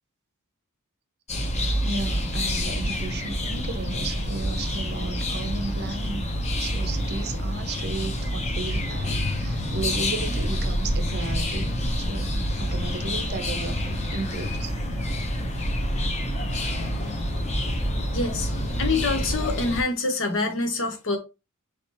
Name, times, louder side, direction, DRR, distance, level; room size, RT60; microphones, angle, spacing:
sound 1, 1.3-19.8, equal, 30° left, 0.9 m, -27 dB
voice 1, 1.8-6.2 6.6-14.7, right 3 dB, 50° right, 0.6 m, -34 dB
voice 2, 18.1-18.5 18.8-21.2, left 3 dB, 60° left, 0.9 m, -26 dB
4.7 x 3.3 x 2.9 m
head